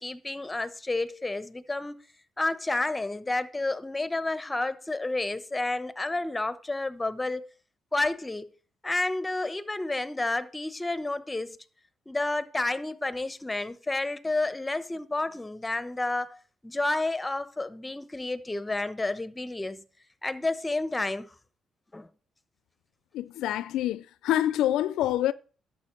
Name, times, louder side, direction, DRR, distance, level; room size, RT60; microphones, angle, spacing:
voice 1, 0.0-2.0 2.4-7.4 7.9-8.4 8.8-11.6 12.1-19.8 20.2-21.3 21.9-22.1, left 2 dB, 15° left, 1.0 m, -30 dB
voice 2, 23.1-25.3, left 12 dB, 85° left, 0.4 m, -26 dB
11.5 x 7.3 x 4.4 m
cardioid pair, 90°, 0 cm